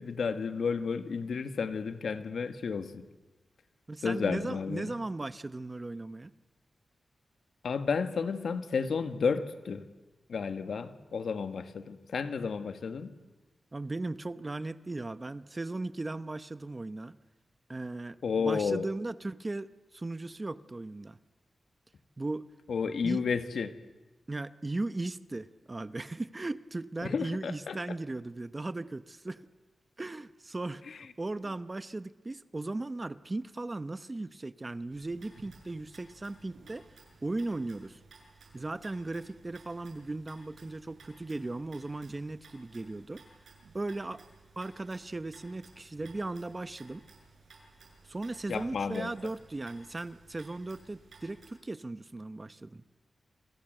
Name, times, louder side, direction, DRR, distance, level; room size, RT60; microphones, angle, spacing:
voice 1, 0.0-3.1 4.0-4.9 7.6-9.8 10.3-13.1 18.2-18.9 22.7-23.7 27.0-27.8 30.9-31.0 48.5-49.1, left 5 dB, 80° left, 10 dB, 1.7 m, -32 dB
voice 2, 3.9-6.3 13.7-17.2 17.7-21.2 22.2-22.5 23.0-23.2 24.3-29.4 30.0-36.9 37.2-38.0 38.5-43.2 43.7-44.2 44.6-47.1 48.0-52.8, right 2 dB, 25° right, 14 dB, 0.8 m, -37 dB
sound 1, 34.9-51.5, right 3 dB, 80° right, 7.8 m, -57 dB
28.5 x 26.0 x 7.9 m, 1.1 s
wide cardioid pair, 120°, 0 cm